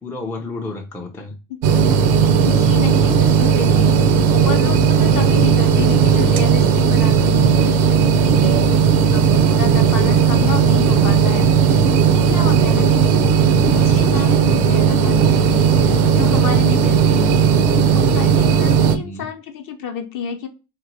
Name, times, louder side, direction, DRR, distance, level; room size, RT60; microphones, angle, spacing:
voice 1, 0.0-1.3 13.4-14.5 18.9-19.3, left 3 dB, 5° left, 0.3 m, -31 dB
voice 2, 1.5-1.8 2.1-4.0 4.3-8.6 9.0-13.4 13.7-20.5, left 7 dB, 40° left, 0.7 m, -30 dB
sound 1, 1.6-19.0, right 7 dB, 75° right, 0.6 m, -15 dB
3.0 x 2.1 x 2.5 m
supercardioid pair, 90°, 50 cm